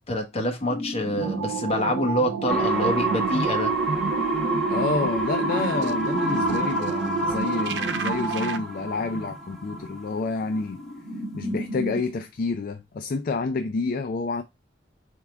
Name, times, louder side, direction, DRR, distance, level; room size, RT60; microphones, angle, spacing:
voice 1, 0.1-3.7, left 1 dB, 35° left, 1.1 m, -26 dB
sound 1, 0.6-12.1, right 1 dB, 80° left, 1.5 m, -36 dB
sound 2, 1.2-8.6, right 7 dB, 65° right, 0.4 m, -30 dB
sound 3, 2.5-10.2 10.5-10.6, right 1 dB, ahead, 1.0 m, -28 dB
voice 2, 4.7-10.8 11.3-14.4, left 3 dB, 50° left, 0.4 m, -29 dB
4.5 x 3.6 x 3.3 m
head